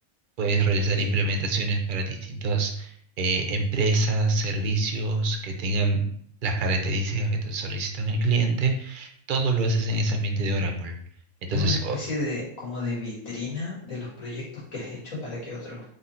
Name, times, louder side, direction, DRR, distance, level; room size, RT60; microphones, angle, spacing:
voice 1, 0.4-6.0 6.4-10.9 11.5-12.0, right 2 dB, 50° right, 3 dB, 0.6 m, -25 dB
voice 2, 11.5-15.8, left 3 dB, 65° left, -6 dB, 2.2 m, -32 dB
4.0 x 3.1 x 4.2 m, 0.65 s
omnidirectional pair, 1.5 m